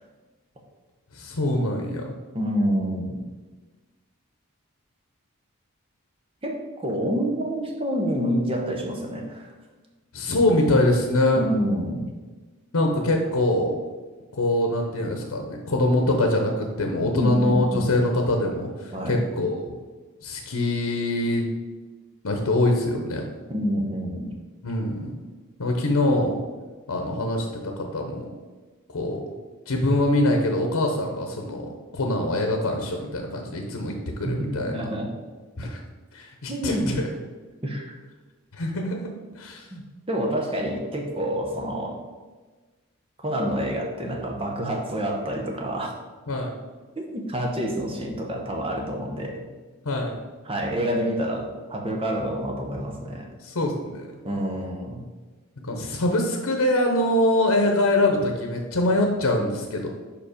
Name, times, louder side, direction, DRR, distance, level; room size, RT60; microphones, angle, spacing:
voice 1, 1.1-2.1 10.1-11.4 12.7-13.7 14.3-19.7 20.2-21.5 22.2-23.2 24.6-25.1 25.6-26.3 26.9-28.3 28.9-29.2 29.7-34.7 35.6-35.8 36.1-37.1 38.5-39.1 39.4-39.7 46.3-46.5 49.8-50.2 53.4-54.1 55.6-59.9, left 1 dB, 85° left, 2 dB, 0.8 m, -24 dB
voice 2, 2.3-3.2 6.4-9.5 11.4-12.1 17.1-17.9 18.9-19.2 23.5-24.3 34.2-35.1 36.5-36.9 37.6-38.0 39.7-42.0 43.2-45.9 47.0-49.4 50.4-53.3 54.2-55.0, equal, 25° right, 1 dB, 0.9 m, -28 dB
5.3 x 5.0 x 5.0 m, 1.3 s
head